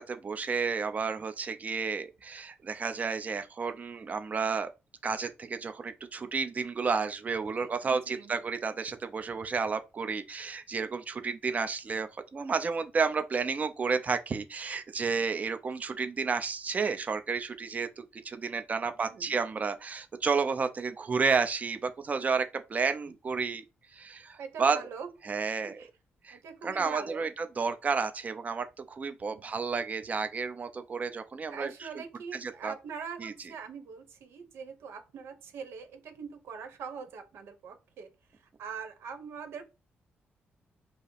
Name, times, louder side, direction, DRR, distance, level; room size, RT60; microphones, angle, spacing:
voice 1, 0.0-4.7 5.0-23.6 23.9-24.8 25.2-25.8 26.2-32.0 32.3-32.7 33.2-33.3, right 5 dB, 35° right, 0.6 m, -31 dB
voice 2, 7.5-8.4 18.9-19.4 24.4-25.1 25.8-25.9 26.3-27.3 29.3-29.6 31.5-38.1 38.6-39.6, right 6 dB, 85° right, 1.0 m, -43 dB
5.3 x 2.0 x 4.8 m
cardioid pair, 100°, 4 cm